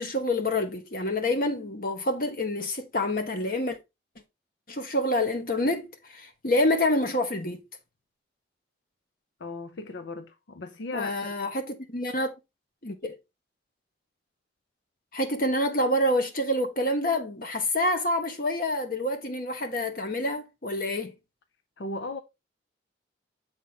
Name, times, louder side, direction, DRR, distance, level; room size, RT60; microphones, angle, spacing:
voice 1, 0.0-3.8 4.7-7.6 10.9-12.3 12.8-13.1 15.1-21.1, left 1 dB, 50° left, 1.2 m, -27 dB
voice 2, 9.4-11.4 21.8-22.2, left 2 dB, 75° left, 0.6 m, -37 dB
7.1 x 4.5 x 4.0 m
head